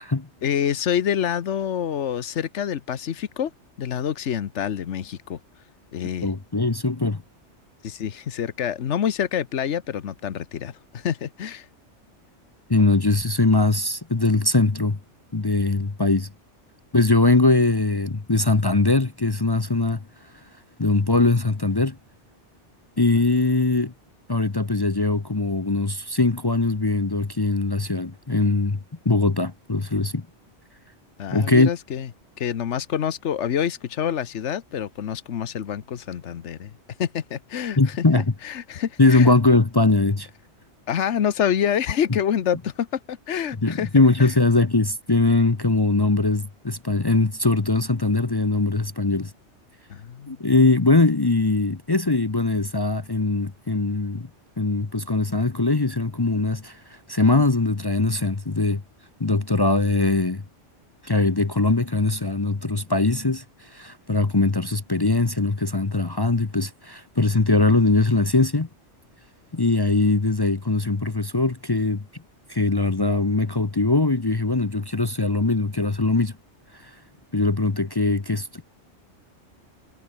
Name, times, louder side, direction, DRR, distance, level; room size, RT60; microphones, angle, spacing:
voice 1, 0.4-3.5 3.8-5.4 5.9-6.3 7.8-11.7 31.2-32.1 32.4-36.7 37.0-39.3 40.9-43.9 44.2-44.3 49.9-50.4, left 9 dB, 75° left, 1.3 m, -27 dB
voice 2, 6.2-7.2 12.7-15.0 15.3-16.3 16.9-20.0 20.8-22.0 23.0-23.9 24.3-28.8 29.0-30.3 31.3-31.7 37.8-38.2 39.0-40.3 43.6-49.3 50.3-54.3 54.6-56.8 57.1-58.8 59.2-60.4 61.0-68.7 69.5-72.0 72.5-76.3 77.3-78.6, left 3 dB, 25° left, 0.8 m, -21 dB
omnidirectional pair, 1.2 m